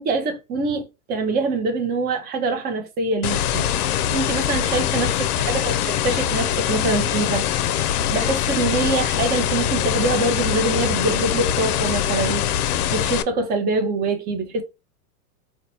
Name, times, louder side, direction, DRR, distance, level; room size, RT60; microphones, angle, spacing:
voice 1, 0.0-3.7 4.1-7.5 8.1-12.5 12.9-14.6, right 3 dB, 20° right, 0.6 m, -24 dB
sound 1, 3.2-13.2, left 10 dB, 75° left, 0.5 m, -23 dB
3.9 x 2.2 x 2.8 m
hypercardioid pair, 125°, 46 cm